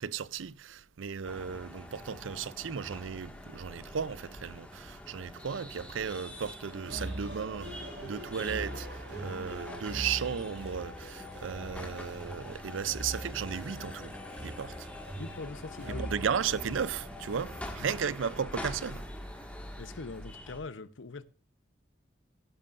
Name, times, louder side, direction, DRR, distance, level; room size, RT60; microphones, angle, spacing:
voice 1, 0.0-14.1 14.4-14.9 16.0-19.1, right 7 dB, 90° right, 0.5 m, -35 dB
sound 1, 1.2-20.6, equal, 5° left, 1.8 m, -45 dB
sound 2, 6.7-17.7, right 1 dB, 70° right, 7.1 m, -42 dB
voice 2, 15.2-16.1 17.8-17.9 19.8-21.3, left 3 dB, 85° left, 0.8 m, -42 dB
16.0 x 11.0 x 2.5 m
head